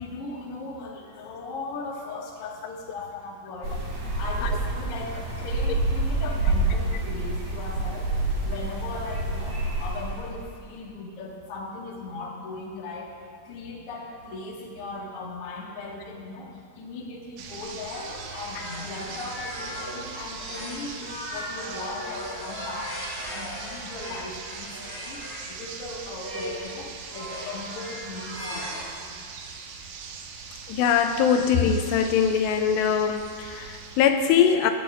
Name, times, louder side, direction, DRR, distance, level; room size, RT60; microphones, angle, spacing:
voice 1, 0.0-8.1 8.4-13.1 13.4-25.2 25.5-29.0, left 2 dB, 50° left, -3 dB, 1.8 m, -38 dB
sound 1, 3.6-10.5, right 2 dB, 45° right, 2.6 m, -27 dB
sound 2, 17.4-34.1, right 5 dB, 75° right, 2.7 m, -41 dB
sound 3, 17.9-25.5 26.1-26.8 27.1-28.8, left 1 dB, 15° left, 1.0 m, -37 dB
voice 2, 30.7-34.7, left 7 dB, 85° left, 6 dB, 2.6 m, -22 dB
19.5 x 12.0 x 2.5 m, 2.1 s
omnidirectional pair, 5.2 m